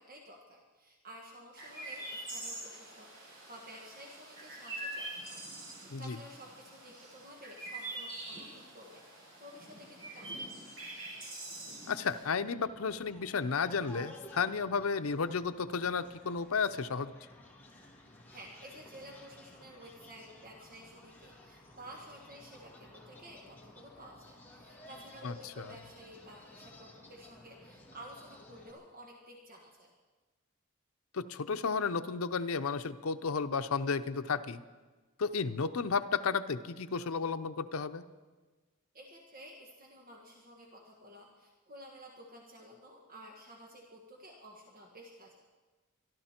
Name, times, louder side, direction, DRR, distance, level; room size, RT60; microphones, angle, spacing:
voice 1, 0.0-10.7 18.3-29.9 38.9-45.5, equal, 40° right, 0 dB, 1.6 m, -52 dB
Chirp tweet, 1.6-12.2, right 2 dB, 75° right, 6.4 m, -45 dB
voice 2, 11.9-17.1 25.2-25.6 31.1-34.6 35.2-38.0, left 5 dB, 90° left, 10 dB, 0.7 m, -33 dB
sound 1, 12.4-28.7, left 1 dB, 10° left, 1.9 m, -55 dB
25.0 x 12.5 x 4.4 m, 1.3 s
head